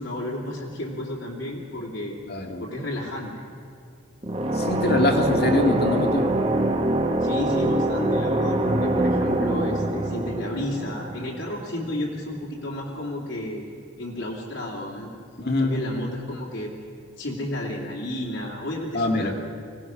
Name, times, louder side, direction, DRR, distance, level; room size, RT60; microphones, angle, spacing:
voice 1, 0.0-2.2 2.6-3.4 7.2-13.6 14.0-15.1 15.6-16.7 17.2-19.3, left 1 dB, 75° left, -4 dB, 2.8 m, -32 dB
voice 2, 2.3-2.6 4.5-6.3 15.4-15.8 18.9-19.3, left 2 dB, 50° left, 3 dB, 1.9 m, -23 dB
sound 1, 4.2-11.9, right 1 dB, 30° right, 1.3 m, -24 dB
25.0 x 17.5 x 6.2 m, 2.3 s
head